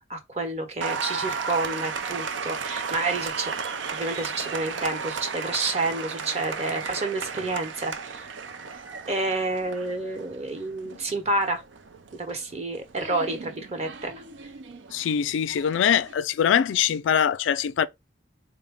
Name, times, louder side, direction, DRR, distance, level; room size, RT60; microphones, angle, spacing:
voice 1, 0.1-3.5 3.9-8.2 9.1-11.6 12.1-14.1 14.4-14.5, right 2 dB, 35° right, 0.9 m, -29 dB
Applause, 0.8-16.1, right 5 dB, 80° right, 0.5 m, -35 dB
voice 2, 14.9-17.9, left 8 dB, 80° left, 0.3 m, -23 dB
4.0 x 2.1 x 3.5 m
head